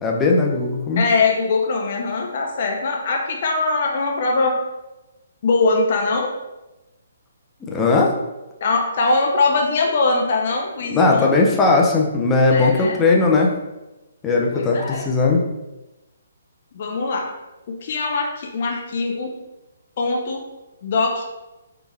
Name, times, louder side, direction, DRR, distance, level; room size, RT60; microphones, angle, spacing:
voice 1, 0.0-1.0 7.7-8.2 10.9-13.5 14.2-15.4, left 3 dB, 15° left, -1 dB, 0.8 m, -18 dB
voice 2, 1.0-4.6 5.4-6.3 8.6-11.4 12.5-13.0 14.5-15.0 16.7-17.3 17.7-19.3 20.0-20.4 20.8-21.2, left 3 dB, 50° left, 1 dB, 0.7 m, -21 dB
4.2 x 3.4 x 3.5 m, 1.0 s
hypercardioid pair, 140°, 0 cm